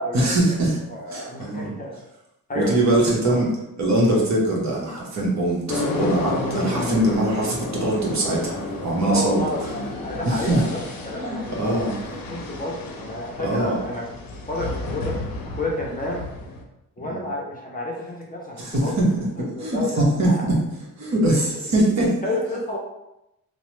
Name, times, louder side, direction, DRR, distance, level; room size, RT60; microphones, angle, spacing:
voice 1, 0.1-0.8 1.1-1.7 2.5-3.5 3.8-9.4 10.3-10.6 11.2-12.0 13.4-13.8 17.0-17.2 18.6-19.3 19.6-20.6 21.0-22.2, right 1 dB, 50° right, -3 dB, 0.9 m, -22 dB
voice 2, 0.9-2.0 2.5-2.7 3.3-3.4 9.0-14.0 14.5-16.3 17.0-18.9 19.4-20.5 22.2-22.8, left 1 dB, 25° left, -3 dB, 0.5 m, -30 dB
sound 1, 5.7-16.6, left 2 dB, 75° left, 0.6 m, -31 dB
3.0 x 2.0 x 3.0 m, 0.89 s
wide cardioid pair, 135°, 35 cm